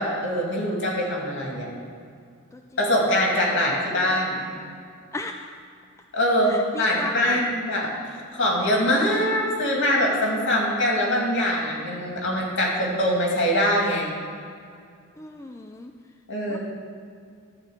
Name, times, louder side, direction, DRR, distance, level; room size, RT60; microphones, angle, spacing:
voice 1, 0.0-1.7 2.8-4.4 6.1-14.0 16.3-16.6, equal, 60° left, -2 dB, 2.3 m, -23 dB
voice 2, 2.5-2.9 5.1-5.3 6.5-7.5 15.2-15.9 16.5-16.6, left 2 dB, 15° left, 4 dB, 0.3 m, -34 dB
12.0 x 4.2 x 8.0 m, 2.3 s
head